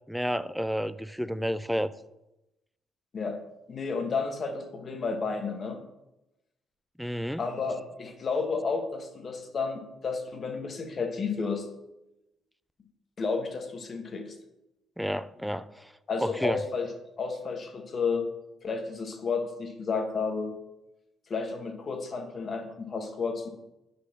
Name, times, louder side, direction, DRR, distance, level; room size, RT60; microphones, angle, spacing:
voice 1, 0.1-1.9 7.0-7.4 15.0-15.9 16.2-16.6, equal, ahead, 14 dB, 0.4 m, -30 dB
voice 2, 3.7-5.8 7.4-11.7 13.2-14.3 16.1-16.9 17.2-18.3 18.6-20.6 21.3-23.5, left 4 dB, 50° left, 5 dB, 1.4 m, -31 dB
9.4 x 6.1 x 2.9 m, 0.92 s
hypercardioid pair, 50°, 0 cm